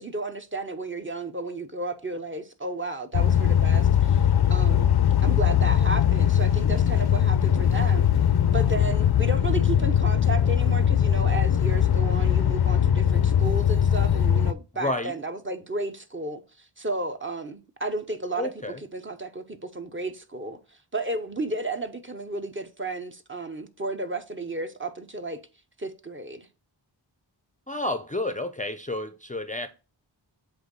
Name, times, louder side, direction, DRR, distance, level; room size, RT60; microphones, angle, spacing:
voice 1, 0.0-4.9 5.2-8.1 8.5-16.4 16.8-20.6 20.9-25.4 25.8-26.5, right 2 dB, 25° right, 0.9 m, -33 dB
sound 1, 3.1-14.5, left 9 dB, 60° left, 0.6 m, -21 dB
voice 2, 14.7-15.1 18.4-18.8 27.7-29.7, left 1 dB, 20° left, 0.5 m, -30 dB
7.8 x 2.6 x 5.3 m
cardioid pair, 45°, 44 cm